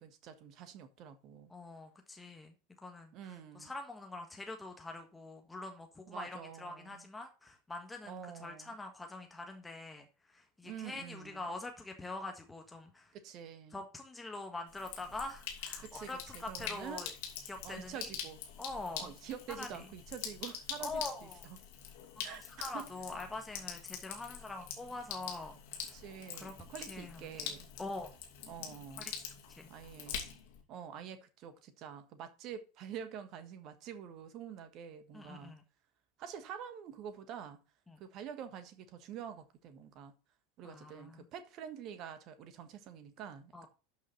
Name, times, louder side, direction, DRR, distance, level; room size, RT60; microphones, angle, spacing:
voice 1, 0.0-1.5 3.1-3.7 6.1-7.0 8.0-8.8 10.6-11.5 13.1-13.8 15.8-17.1 17.6-18.4 19.0-21.0 21.4-21.6 22.2-22.9 25.9-27.7 28.5-29.1 29.7-30.2 30.7-35.6 36.2-37.6 38.0-40.1 40.6-43.7, right 8 dB, 40° right, 1.5 m, -47 dB
voice 2, 1.5-2.5 2.8-13.1 13.7-17.1 17.5-18.1 18.6-19.1 19.6-19.7 20.8-21.4 22.2-25.5 25.9-26.0 26.4-26.5 26.9-27.4 27.8-28.1 29.0-29.1 29.5-29.7 35.1-35.6 37.9-38.0 40.6-41.3 43.5-43.7, left 2 dB, 10° left, 1.5 m, -44 dB
Sink (filling or washing), 14.7-30.6, left 8 dB, 55° left, 2.6 m, -45 dB
12.0 x 5.6 x 4.3 m
figure-of-eight pair, 80°, 0 cm